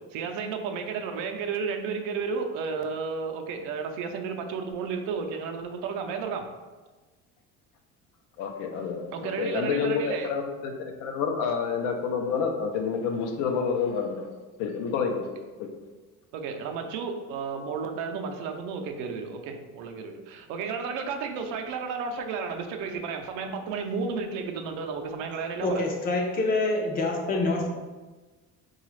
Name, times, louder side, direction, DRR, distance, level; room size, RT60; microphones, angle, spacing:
voice 1, 0.1-6.5 9.1-10.3 16.3-25.8, right 5 dB, 85° right, 4 dB, 0.5 m, -32 dB
voice 2, 8.4-14.3 14.6-15.2 15.6-15.7, left 6 dB, 85° left, 4 dB, 0.6 m, -29 dB
voice 3, 25.6-27.7, left 2 dB, 30° left, 2 dB, 0.5 m, -26 dB
3.9 x 2.3 x 3.1 m, 1.3 s
cardioid pair, 170°, 29 cm